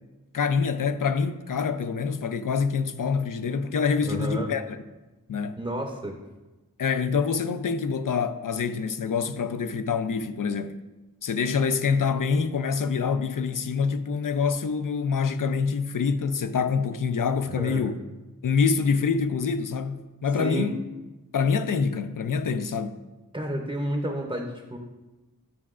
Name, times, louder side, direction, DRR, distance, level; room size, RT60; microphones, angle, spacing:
voice 1, 0.3-4.7 5.3-5.6 6.8-10.8 11.2-18.0 18.4-20.8 21.3-23.0, left 5 dB, 65° left, 0.5 m, -26 dB
voice 2, 4.0-4.5 5.6-6.2 17.5-17.9 20.3-20.7 23.3-24.8, right 1 dB, 15° right, 0.7 m, -31 dB
9.4 x 5.9 x 2.4 m
wide cardioid pair, 45°, 35 cm